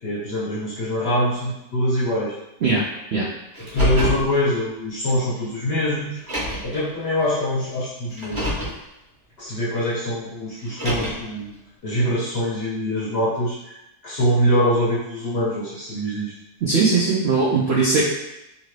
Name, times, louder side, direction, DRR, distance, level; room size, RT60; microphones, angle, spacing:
voice 1, 0.0-2.4 3.1-3.2 3.6-6.2 6.6-8.5 9.4-11.5 11.8-13.8 14.0-16.3, equal, 55° left, -7 dB, 0.7 m, -24 dB
Car, 3.5-4.3 5.4-5.5 6.2-6.8 8.1-8.8 10.6-11.3, left 1 dB, 30° right, 1.1 m, -26 dB
voice 2, 16.6-18.0, right 4 dB, 70° right, -5 dB, 0.6 m, -19 dB
2.9 x 2.6 x 3.2 m, 0.89 s
omnidirectional pair, 1.7 m